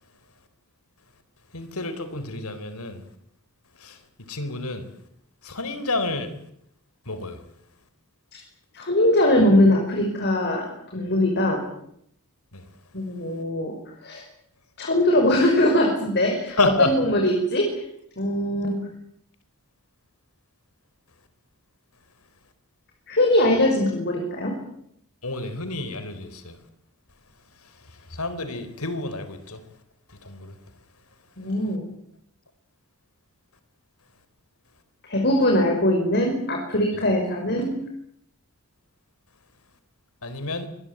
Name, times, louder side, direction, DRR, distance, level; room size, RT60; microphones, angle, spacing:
voice 1, 1.5-3.0 3.8-4.9 5.4-6.3 7.1-7.4 12.5-12.7 16.5-17.0 25.2-26.6 27.6-29.6 30.1-30.6 36.9-37.0 40.2-40.7, left 2 dB, 80° left, 4.2 m, -29 dB
voice 2, 8.7-11.6 12.9-13.7 14.0-14.2 14.8-17.8 18.2-18.9 23.1-24.5 31.4-31.8 35.1-37.8, left 1 dB, 50° left, 5.7 m, -21 dB
25.5 x 21.5 x 9.1 m
head